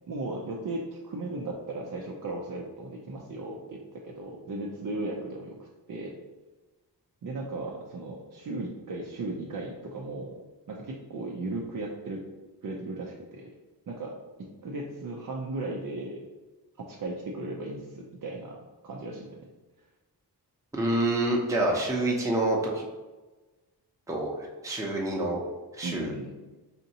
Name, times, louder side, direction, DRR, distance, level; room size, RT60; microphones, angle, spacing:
voice 1, 0.1-5.6 5.9-6.2 7.2-10.4 10.7-12.2 12.6-13.5 13.9-14.1 14.4-16.2 16.8-19.5 25.8-26.4, right 2 dB, 50° right, -2 dB, 0.6 m, -36 dB
voice 2, 20.7-22.8 24.1-24.3 24.6-25.4 25.8-26.1, right 1 dB, 5° right, -3 dB, 0.7 m, -27 dB
4.3 x 2.7 x 2.8 m, 1.2 s
cardioid pair, 55°, 42 cm